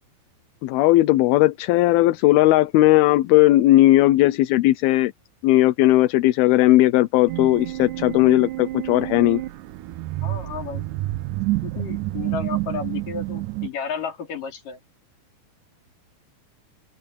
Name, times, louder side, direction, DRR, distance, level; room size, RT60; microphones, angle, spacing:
voice 1, 0.6-5.1 5.4-9.4, left 16 dB, 85° left, 2.7 m, -17 dB
sound 1, 7.3-13.7, right 17 dB, 75° right, 2.0 m, -29 dB
voice 2, 10.2-10.9 11.6-14.8, left 6 dB, 60° left, 5.5 m, -32 dB
open air
omnidirectional pair, 4.4 m